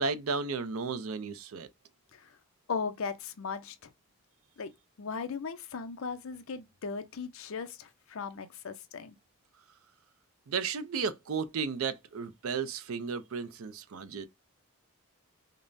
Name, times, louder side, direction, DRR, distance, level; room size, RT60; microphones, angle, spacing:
voice 1, 0.0-1.7 10.5-14.3, right 5 dB, 70° right, 0.5 m, -34 dB
voice 2, 2.7-3.9 4.6-4.7 5.0-9.2, left 5 dB, 65° left, 0.5 m, -37 dB
5.2 x 2.1 x 2.5 m
head